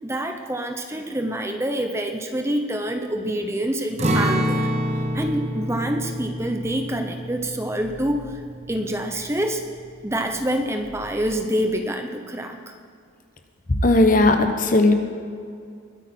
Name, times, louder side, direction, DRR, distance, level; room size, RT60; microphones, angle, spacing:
voice 1, 0.0-4.7 5.1-8.4 8.7-9.6 10.0-12.7, right 1 dB, 15° right, 5 dB, 0.6 m, -26 dB
Acoustic guitar, 4.0-9.9 10.2-10.4 10.8-11.3, equal, 35° right, 1.1 m, -27 dB
voice 2, 13.8-14.9, left 2 dB, 40° left, 6 dB, 1.0 m, -16 dB
21.0 x 8.8 x 4.3 m, 2.3 s
head